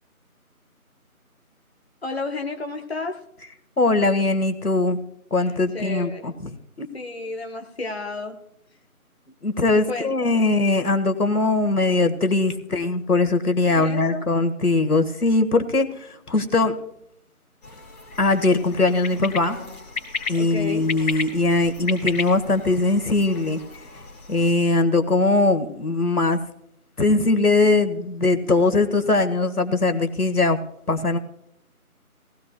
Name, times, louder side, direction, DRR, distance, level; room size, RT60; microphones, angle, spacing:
voice 1, 2.0-3.2 5.4-6.4 6.9-8.4 9.9-10.5 13.7-14.2 20.3-20.9, left 3 dB, 45° left, 3 dB, 1.1 m, -32 dB
voice 2, 3.8-5.0 5.3-6.3 6.8-6.9 9.4-16.8 18.2-19.6 20.3-23.6 24.3-26.4 27.0-30.6 30.9-31.2, left 3 dB, 85° left, 7 dB, 1.7 m, -21 dB
sound 1, 17.6-24.5, left 4 dB, 30° left, 3.2 m, -34 dB
18.0 x 16.5 x 2.3 m, 0.75 s
figure-of-eight pair, 170°, 44 cm